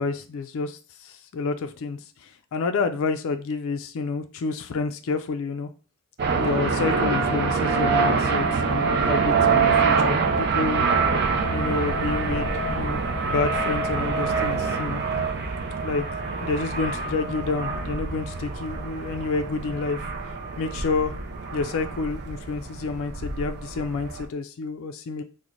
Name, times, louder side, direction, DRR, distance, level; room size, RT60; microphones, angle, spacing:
voice 1, 0.0-5.7 6.4-10.9 11.5-15.0 15.8-16.0 16.3-20.0 20.6-21.1 21.5-25.2, left 4 dB, 65° left, 8 dB, 0.3 m, -29 dB
sound 1, 6.2-24.2, right 4 dB, 50° right, 0.4 m, -25 dB
3.8 x 2.1 x 3.1 m, 0.35 s
head